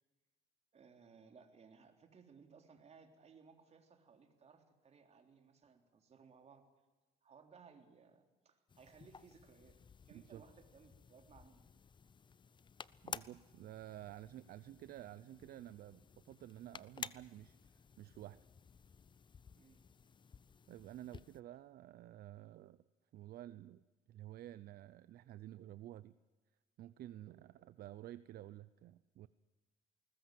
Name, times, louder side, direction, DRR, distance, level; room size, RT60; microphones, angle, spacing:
voice 1, 0.7-6.6 7.2-9.8 10.1-11.6 19.6-19.8, right 5 dB, 40° right, 5 dB, 3.7 m, -62 dB
sound 1, 8.7-21.4, left 6 dB, 30° left, 0.7 m, -54 dB
voice 2, 13.0-18.4 20.7-22.8 23.1-26.1 26.8-29.3, right 13 dB, 65° right, 15 dB, 0.7 m, -52 dB
20.5 x 20.0 x 7.8 m, 1.2 s
cardioid pair, 110°, 17 cm